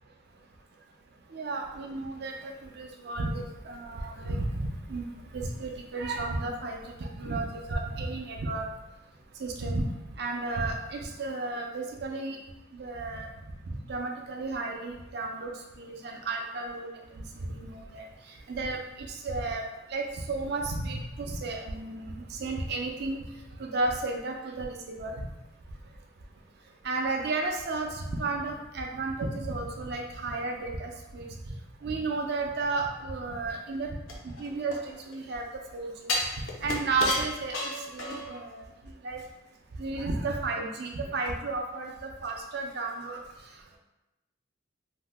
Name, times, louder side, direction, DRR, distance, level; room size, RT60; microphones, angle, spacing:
voice 1, 1.3-8.7 9.4-9.9 10.2-12.4 12.7-13.3 13.7-15.5 15.8-18.1 18.5-19.6 19.9-23.2 23.6-25.1 26.8-31.6 31.8-33.9 34.2-35.5 35.7-38.6 39.0-39.2 39.8-43.2, right 3 dB, 55° right, 2 dB, 0.4 m, -33 dB
sound 1, 34.1-35.2 36.1-38.4 38.8-38.9, left 2 dB, 80° left, 0.6 m, -33 dB
2.7 x 2.1 x 3.4 m, 0.95 s
head